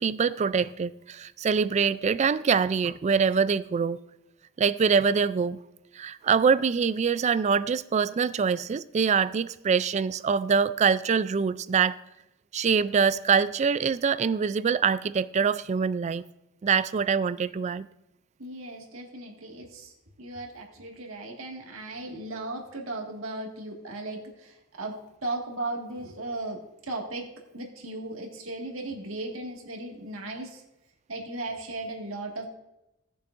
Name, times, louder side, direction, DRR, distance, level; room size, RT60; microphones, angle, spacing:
voice 1, 0.0-4.0 4.6-5.6 5.9-12.0 12.5-16.2 16.6-17.9, right 6 dB, 35° right, 0.3 m, -24 dB
voice 2, 18.4-19.9 20.2-26.6 26.9-30.6 31.1-32.5, right 2 dB, 80° right, 1.9 m, -36 dB
18.5 x 6.8 x 2.5 m
head